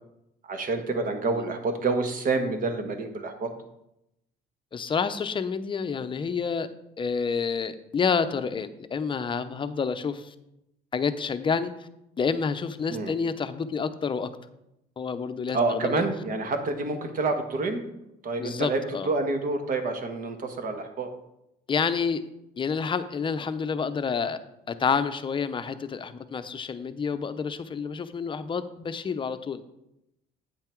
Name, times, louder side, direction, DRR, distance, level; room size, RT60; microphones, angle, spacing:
voice 1, 0.5-3.5 12.9-13.1 15.5-17.8 18.2-18.8 19.0-21.1, right 3 dB, 50° right, 6 dB, 1.4 m, -28 dB
voice 2, 4.7-6.7 7.0-10.3 10.9-11.9 12.2-14.3 15.0-16.0 18.4-19.1 21.7-22.2 22.6-24.4 24.7-29.6, left 5 dB, 30° left, 10 dB, 0.6 m, -29 dB
9.1 x 5.7 x 4.5 m, 0.85 s
cardioid pair, 110°, 17 cm